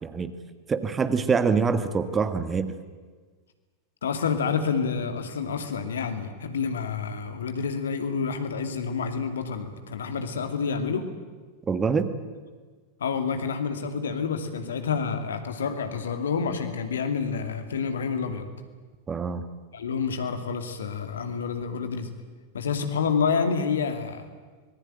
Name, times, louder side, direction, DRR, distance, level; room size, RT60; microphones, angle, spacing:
voice 1, 0.0-0.3 0.7-2.7 11.7-12.1 19.1-19.5, right 5 dB, 20° right, 11 dB, 1.6 m, -25 dB
voice 2, 4.0-11.1 13.0-18.5 19.7-22.1 22.5-24.3, left 5 dB, 65° left, 7 dB, 2.4 m, -28 dB
25.0 x 20.0 x 9.0 m, 1.4 s
figure-of-eight pair, 90°, 0 cm